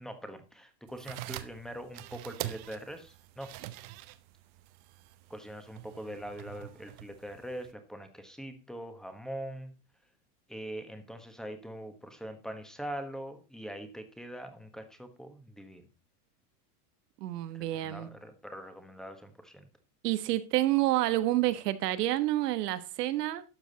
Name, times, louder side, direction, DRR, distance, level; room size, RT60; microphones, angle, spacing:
voice 1, 0.0-3.5 5.3-9.7 10.5-15.8 17.5-19.7, equal, ahead, 1.3 m, -43 dB
sound 1, 0.9-7.7, right 16 dB, 50° right, 1.0 m, -45 dB
voice 2, 17.2-18.1 20.0-23.4, right 15 dB, 80° right, 1.4 m, -28 dB
12.5 x 7.2 x 4.0 m
supercardioid pair, 150°, 47 cm